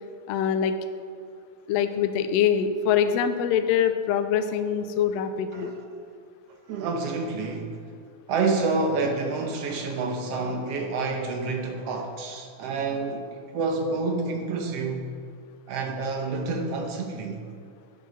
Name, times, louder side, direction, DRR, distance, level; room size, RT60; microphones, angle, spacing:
voice 1, 0.3-0.8 1.7-5.8, left 8 dB, 85° left, 9 dB, 1.5 m, -24 dB
voice 2, 6.7-7.8 8.3-15.1 15.7-17.4, right 3 dB, 65° right, 3 dB, 1.6 m, -28 dB
9.3 x 6.8 x 6.5 m, 2.2 s
omnidirectional pair, 3.6 m